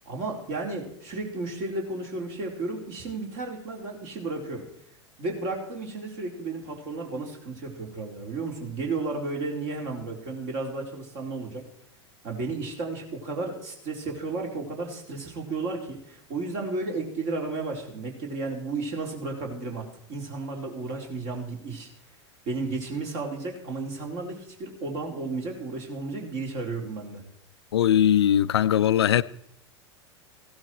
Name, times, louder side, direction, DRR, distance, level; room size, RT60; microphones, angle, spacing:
voice 1, 0.1-4.7 5.2-11.6 12.2-21.9 22.5-27.2, right 3 dB, 45° right, 4.2 m, -33 dB
voice 2, 27.7-29.2, left 10 dB, 65° left, 0.5 m, -20 dB
16.5 x 12.0 x 4.5 m
figure-of-eight pair, 85°, 15 cm